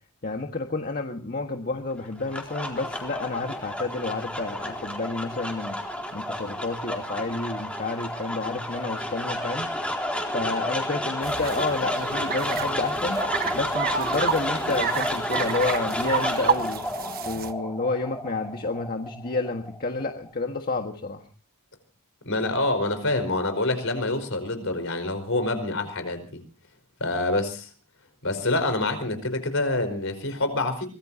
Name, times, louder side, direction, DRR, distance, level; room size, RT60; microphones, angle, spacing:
voice 1, 0.2-5.8 6.1-9.7 10.3-13.2 13.5-16.8 17.2-21.2, left 3 dB, 45° left, 4 dB, 1.6 m, -30 dB
sound 1, 2.0-20.3, left 1 dB, 5° left, 4.0 m, -31 dB
sound 2, 11.2-17.5, right 6 dB, 45° right, 1.3 m, -30 dB
voice 2, 22.2-26.4 27.0-27.7 28.2-30.9, left 2 dB, 60° left, 9 dB, 4.9 m, -26 dB
24.5 x 20.5 x 2.9 m, 0.36 s
head